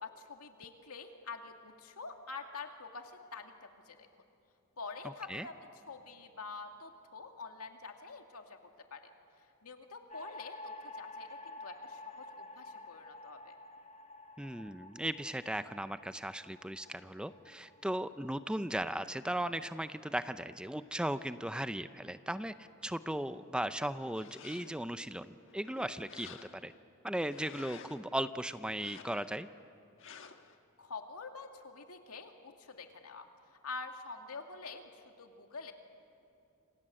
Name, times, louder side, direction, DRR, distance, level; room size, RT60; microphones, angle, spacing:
voice 1, 0.0-4.1 4.8-8.6 8.9-9.1 9.6-13.5 30.8-33.3 33.6-35.7, left 4 dB, 85° left, 4 dB, 2.4 m, -46 dB
sound 1, 10.1-20.4, left 2 dB, 30° left, 1.1 m, -51 dB
voice 2, 14.4-22.5 22.8-26.7 27.0-29.5, right 1 dB, 5° right, 12 dB, 0.5 m, -37 dB
sound 2, 24.0-24.9 25.4-26.8 27.2-28.1 28.7-29.4 30.0-30.6, left 6 dB, 60° left, 1.4 m, -53 dB
28.0 x 27.0 x 7.7 m, 2.6 s
head